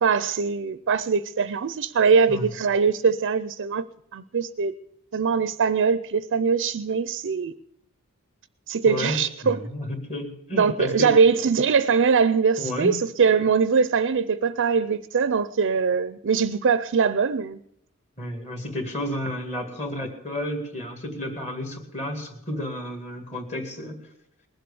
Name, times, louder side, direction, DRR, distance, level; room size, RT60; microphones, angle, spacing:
voice 1, 0.0-3.9 4.1-4.7 5.1-7.5 8.7-9.7 10.5-17.6, right 5 dB, 55° right, 0.5 m, -22 dB
voice 2, 8.9-9.2 9.4-11.1 12.6-12.9 18.2-24.0, left 1 dB, 30° left, 2.2 m, -31 dB
20.5 x 7.8 x 6.9 m
head